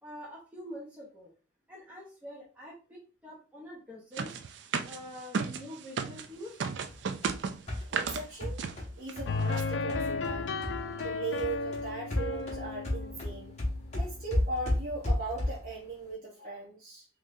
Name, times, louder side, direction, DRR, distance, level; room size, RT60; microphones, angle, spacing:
voice 1, 0.0-1.3 1.7-4.3 4.8-6.6, left 1 dB, 10° right, -6 dB, 0.8 m, -45 dB
sound 1, 4.2-6.3 6.6-8.2 8.6-8.8 9.1-9.2 9.4-9.6, right 5 dB, 70° right, 0.4 m, -34 dB
sound 2, 6.9-11.1 11.4-15.8, left 1 dB, 35° left, 0.9 m, -34 dB
voice 2, 7.9-8.6 9.0-10.5 11.0-13.5 13.9-17.1, right 3 dB, 45° right, -5 dB, 0.9 m, -38 dB
sound 3, 9.3-14.2, left 4 dB, 75° left, 0.4 m, -34 dB
3.6 x 3.0 x 2.6 m, 0.35 s
head